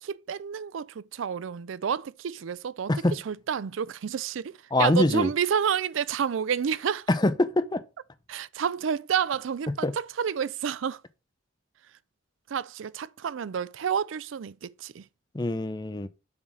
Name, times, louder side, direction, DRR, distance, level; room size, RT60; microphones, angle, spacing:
voice 1, 0.0-2.9 3.3-4.5 4.8-7.1 8.3-11.0 12.5-15.0, right 7 dB, 75° right, 0.4 m, -29 dB
voice 2, 4.7-5.3 7.1-7.8 9.8-9.9 15.3-16.1, left 2 dB, 20° left, 0.6 m, -24 dB
7.3 x 3.9 x 6.2 m
head